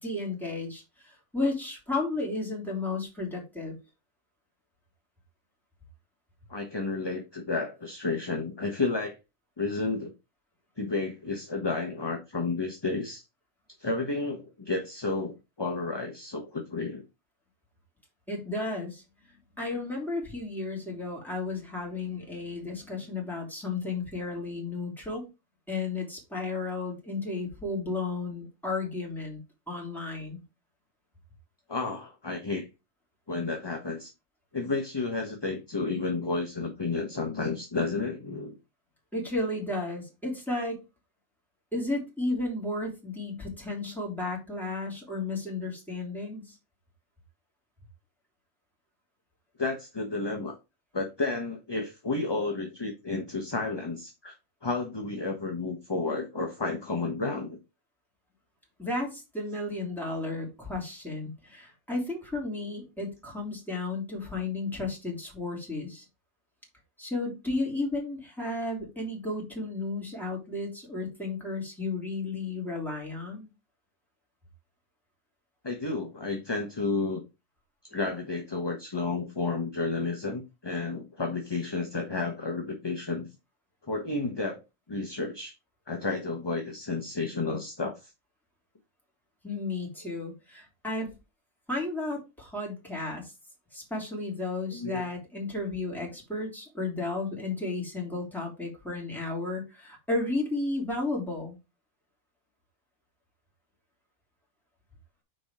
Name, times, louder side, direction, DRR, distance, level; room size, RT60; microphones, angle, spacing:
voice 1, 0.0-3.8 18.3-19.0 19.3-25.2 25.7-29.4 29.7-30.4 39.1-40.8 41.7-46.6 58.8-66.0 67.0-73.5 89.4-91.1 91.7-93.3 93.7-101.6, left 2 dB, ahead, -2 dB, 3.3 m, -33 dB
voice 2, 6.5-9.2 9.6-10.1 10.8-13.2 13.8-17.0 31.7-32.7 33.3-34.1 34.5-38.5 49.6-50.6 50.9-54.3 54.6-57.6 75.6-77.2 77.9-83.3 83.9-84.6 84.9-85.5 85.9-88.1 94.7-95.0, left 3 dB, 20° left, 3 dB, 0.9 m, -31 dB
6.4 x 4.7 x 5.0 m, 0.26 s
omnidirectional pair, 1.5 m